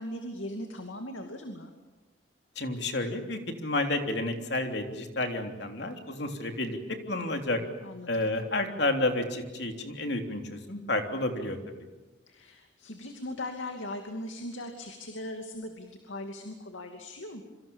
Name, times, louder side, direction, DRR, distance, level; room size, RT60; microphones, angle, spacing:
voice 1, 0.0-1.7 7.8-8.3 12.3-17.4, left 1 dB, 85° left, 4 dB, 2.6 m, -39 dB
voice 2, 2.5-6.8 7.1-7.6 8.1-11.6, left 2 dB, 60° left, 4 dB, 3.4 m, -30 dB
28.0 x 25.5 x 7.3 m, 1.2 s
head